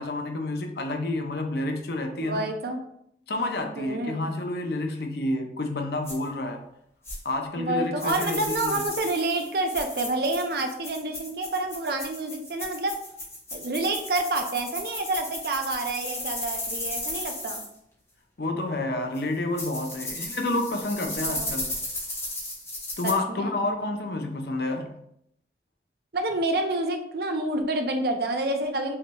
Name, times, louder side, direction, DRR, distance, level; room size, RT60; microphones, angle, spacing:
voice 1, 0.0-2.4 3.3-6.6 7.2-8.8 18.4-21.8 23.0-24.9, left 2 dB, 60° left, 0.5 m, -29 dB
voice 2, 2.2-2.8 3.8-4.2 7.6-12.9 13.5-17.6 21.2-21.6 23.0-23.5 26.1-29.0, right 2 dB, 55° right, 0.5 m, -28 dB
sound 1, 6.0-6.1 7.0-7.2 8.0-17.7 19.1-19.2 19.6-23.1, left 1 dB, 15° left, 1.0 m, -35 dB
5.5 x 3.1 x 2.3 m
head